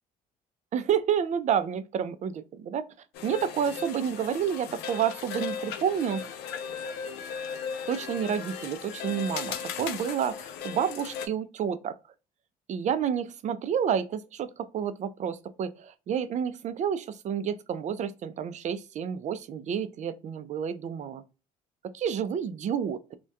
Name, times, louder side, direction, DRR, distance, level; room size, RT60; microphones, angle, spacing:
voice 1, 0.7-2.3 2.6-2.8 3.2-6.2 7.9-12.0 12.7-21.2 21.8-23.1, right 8 dB, 45° right, 0.4 m, -29 dB
sound 1, 3.1-11.3, left 6 dB, 75° left, 0.4 m, -37 dB
2.2 x 2.2 x 2.6 m
supercardioid pair, 70°, 17 cm